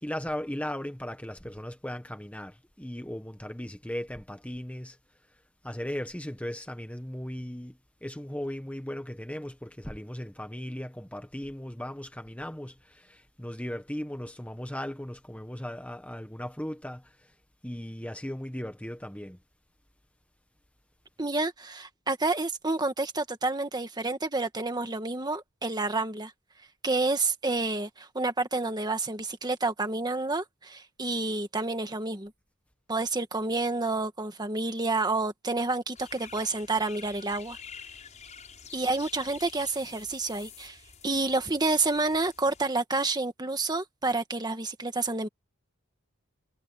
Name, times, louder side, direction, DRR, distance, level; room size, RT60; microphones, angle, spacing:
voice 1, 0.0-5.0 5.6-17.3 17.6-19.4, left 1 dB, 5° left, 1.4 m, -37 dB
voice 2, 21.2-26.3 26.8-32.3 32.9-37.6 38.7-40.8 41.0-45.3, right 3 dB, 20° right, 1.7 m, -29 dB
sound 1, 35.9-42.7, left 7 dB, 35° left, 7.2 m, -48 dB
head